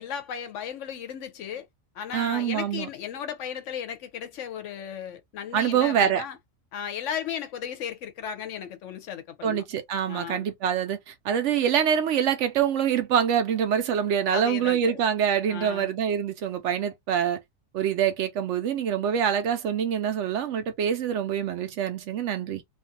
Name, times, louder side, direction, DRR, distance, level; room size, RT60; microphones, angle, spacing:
voice 1, 0.0-1.7 1.9-6.4 6.7-9.6 10.1-10.5 14.3-15.0 15.5-15.9, left 8 dB, 70° left, 0.9 m, -35 dB
voice 2, 2.1-2.9 5.5-6.2 9.4-17.4 17.7-22.6, right 8 dB, 70° right, 0.8 m, -25 dB
2.5 x 2.4 x 2.6 m
omnidirectional pair, 1.4 m